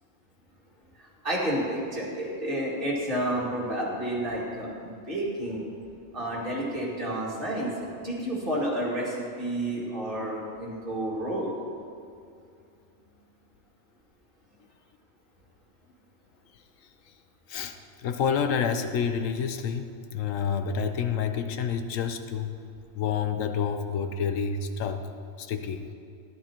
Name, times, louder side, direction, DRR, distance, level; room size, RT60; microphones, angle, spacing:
voice 1, 1.0-5.6 6.1-7.7 8.0-11.5, right 1 dB, 40° right, -5 dB, 2.2 m, -30 dB
voice 2, 17.5-22.5 23.0-25.0 25.4-25.9, left 6 dB, 75° left, 8 dB, 1.0 m, -29 dB
13.5 x 11.0 x 2.9 m, 2.5 s
omnidirectional pair, 1.4 m